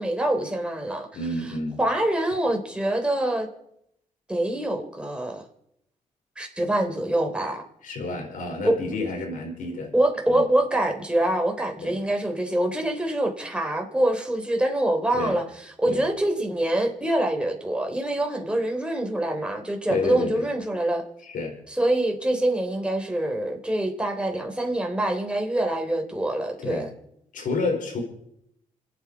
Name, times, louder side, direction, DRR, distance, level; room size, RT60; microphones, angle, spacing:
voice 1, 0.0-1.1 1.8-3.5 4.3-5.4 6.4-7.6 8.6-8.7 9.9-15.4 15.8-21.0 21.7-26.9, right 1 dB, 5° right, 2 dB, 3.8 m, -25 dB
voice 2, 1.1-1.8 7.8-9.9 10.3-10.4 11.8-12.0 15.1-15.4 15.9-16.0 19.9-20.4 21.2-21.5 26.6-26.9 27.3-28.0, left 3 dB, 75° left, 1 dB, 5.0 m, -29 dB
28.0 x 9.4 x 4.9 m, 0.76 s
supercardioid pair, 60°, 14 cm